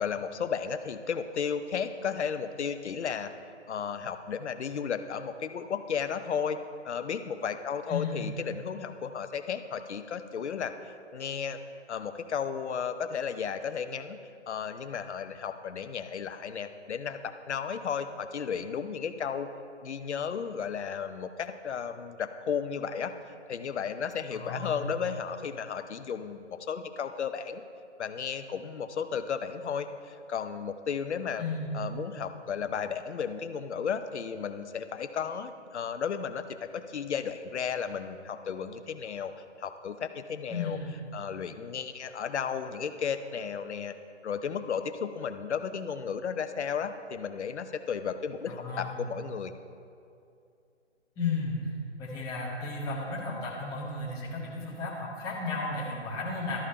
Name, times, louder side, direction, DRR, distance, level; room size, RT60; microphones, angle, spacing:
voice 1, 0.0-3.3 3.7-6.6 6.8-10.7 11.1-11.6 11.9-14.2 14.5-19.5 19.8-23.2 23.5-27.6 28.0-31.4 31.7-39.3 39.6-40.8 41.1-43.9 44.2-49.5, left 7 dB, 65° left, 10 dB, 0.7 m, -34 dB
voice 2, 7.9-8.4 24.3-24.8 31.4-31.9 40.5-41.0 48.5-49.0 51.2-51.6 52.0-56.6, left 3 dB, 10° left, -5 dB, 1.0 m, -34 dB
12.5 x 4.9 x 4.2 m, 2.6 s
figure-of-eight pair, 145°, 36 cm